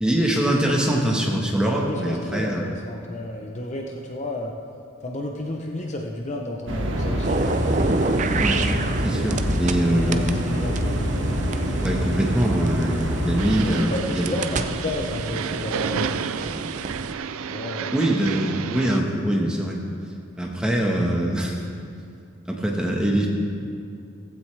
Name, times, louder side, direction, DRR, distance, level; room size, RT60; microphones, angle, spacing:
voice 1, 0.0-2.6 8.4-8.6 9.0-10.2 11.8-14.4 17.9-19.8 20.4-21.6 22.5-23.3, right 1 dB, 5° right, -1 dB, 1.3 m, -23 dB
voice 2, 1.6-4.5 5.0-7.6 9.9-11.4 13.5-16.2 17.5-18.0, left 1 dB, 35° left, 1 dB, 0.7 m, -32 dB
sound 1, 6.7-13.8, equal, 65° right, 1.5 m, -25 dB
sound 2, 7.2-9.8 10.1-13.0 13.6-17.1, right 3 dB, 35° right, 0.5 m, -28 dB
sound 3, 13.4-19.0, right 6 dB, 90° right, 0.5 m, -31 dB
15.5 x 15.5 x 3.4 m, 2.4 s
head